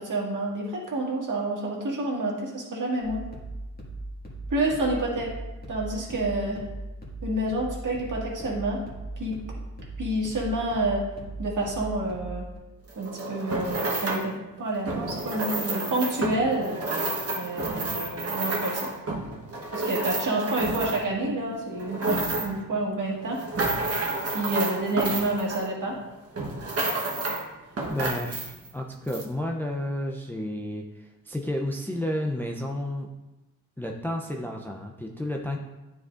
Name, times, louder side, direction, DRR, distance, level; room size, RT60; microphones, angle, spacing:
voice 1, 0.0-3.3 4.5-5.3 5.7-6.6 7.2-8.8 9.2-9.4 10.0-11.1 11.4-12.5 13.0-16.8 17.3-18.9 19.7-23.4 24.3-26.0, right 2 dB, 60° right, -3 dB, 1.9 m, -28 dB
sound 1, 3.0-12.6, right 2 dB, 25° left, 1.9 m, -38 dB
sound 2, 12.9-14.3 14.8-21.2 21.7-22.7 23.2-26.0 26.4-27.5 27.8-28.7 29.1-29.2, right 2 dB, 40° right, 1.2 m, -30 dB
voice 2, 27.9-33.1 33.8-35.6, left 1 dB, 5° left, 1 dB, 0.5 m, -31 dB
9.3 x 4.7 x 2.5 m, 1.0 s
cardioid pair, 80°, 35 cm